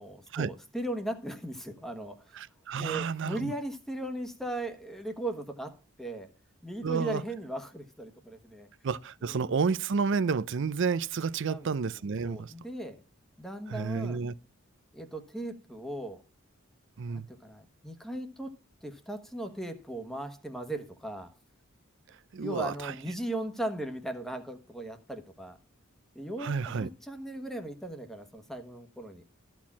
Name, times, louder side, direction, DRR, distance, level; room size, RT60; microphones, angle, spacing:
voice 1, 0.0-2.2 2.8-6.3 6.6-8.7 9.2-9.5 11.4-11.7 12.2-13.0 13.4-14.3 14.9-16.2 17.1-21.3 22.4-25.6 26.1-29.2, right 1 dB, ahead, 1.2 m, -38 dB
voice 2, 2.4-3.5 6.8-7.2 8.8-12.5 13.7-14.3 17.0-17.3 22.3-22.9 26.4-26.9, right 5 dB, 60° right, 0.5 m, -30 dB
13.5 x 4.5 x 7.2 m
head